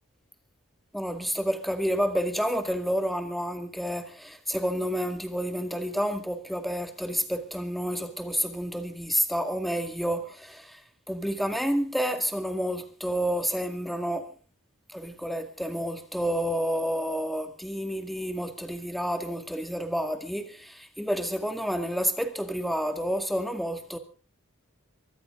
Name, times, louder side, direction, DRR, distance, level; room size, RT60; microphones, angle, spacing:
voice 1, 0.9-10.8 11.1-14.3 14.9-24.0, equal, ahead, 2.0 m, -29 dB
23.5 x 15.0 x 3.8 m
head